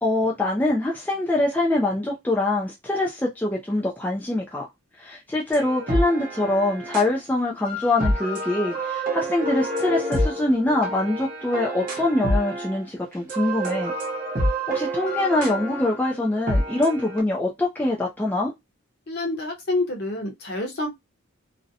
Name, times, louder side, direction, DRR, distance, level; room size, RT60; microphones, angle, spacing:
voice 1, 0.0-4.7 5.0-13.9 14.7-18.5, left 2 dB, 10° left, 0.3 m, -24 dB
sound 1, 5.5-7.1 7.6-12.8 13.1-17.2, equal, 40° right, 0.9 m, -28 dB
voice 2, 19.1-20.9, left 2 dB, 50° left, 0.8 m, -27 dB
2.5 x 2.1 x 2.6 m
head